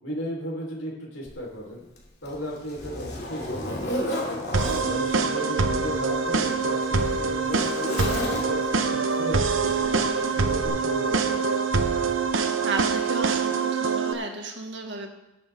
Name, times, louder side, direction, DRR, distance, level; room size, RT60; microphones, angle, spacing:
voice 1, 0.0-1.8 2.2-4.4 4.9-7.7 8.0-10.0 10.3-12.0, equal, 80° left, -1 dB, 3.9 m, -36 dB
Zipper (clothing), 1.3-1.4 2.0-4.9 5.9-8.8 9.8-10.0 10.6-10.7, left 1 dB, 55° left, 2.6 m, -33 dB
sound 1, 4.5-14.1, right 4 dB, 90° right, 0.9 m, -25 dB
voice 2, 12.6-15.1, right 3 dB, 65° right, 2 dB, 1.7 m, -33 dB
19.0 x 7.7 x 3.6 m, 0.99 s
head